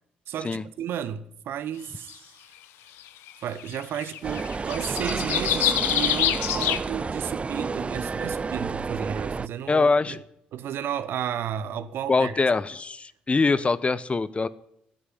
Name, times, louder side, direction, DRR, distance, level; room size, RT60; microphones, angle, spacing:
voice 1, 0.3-2.5 3.4-10.2 10.5-12.3 13.5-13.6, right 9 dB, 65° right, 1.0 m, -33 dB
sound 1, 2.1-2.2 3.3-3.4 3.6-6.8, left 12 dB, 70° left, 0.9 m, -26 dB
sound 2, 4.2-9.5, right 4 dB, 30° right, 0.4 m, -30 dB
voice 2, 9.7-10.2 12.1-14.5, left 4 dB, 30° left, 0.9 m, -23 dB
10.5 x 9.9 x 10.0 m
hypercardioid pair, 55°, 4 cm